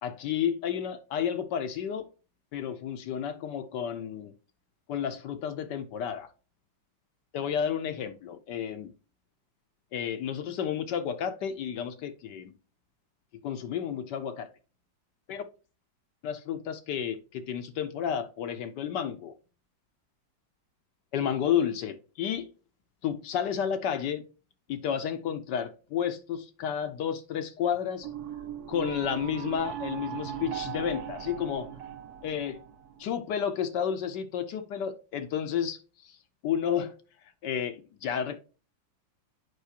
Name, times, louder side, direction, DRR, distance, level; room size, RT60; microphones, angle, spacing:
voice 1, 0.0-2.1 2.5-4.3 4.9-6.3 7.3-8.9 9.9-12.5 13.4-14.5 15.3-15.4 16.2-19.3 21.1-22.5 23.0-24.2 24.7-28.1 28.7-31.7 32.2-32.6 33.0-35.8 36.4-36.9 37.4-38.4, left 8 dB, 70° left, 1.2 m, -31 dB
sound 1, 28.0-33.0, right 10 dB, 65° right, 1.1 m, -38 dB
8.1 x 5.4 x 2.8 m
omnidirectional pair, 2.1 m